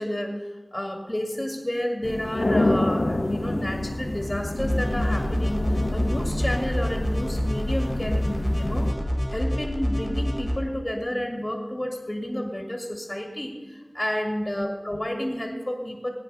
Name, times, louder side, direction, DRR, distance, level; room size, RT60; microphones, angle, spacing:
voice 1, 0.0-9.0 9.3-16.1, equal, 25° left, 2 dB, 2.3 m, -30 dB
sound 1, 2.0-8.9, left 2 dB, 70° left, 1.4 m, -28 dB
sound 2, 4.6-10.6, equal, 10° right, 4.4 m, -27 dB
19.0 x 9.7 x 5.7 m, 1.3 s
wide cardioid pair, 40°, 0 cm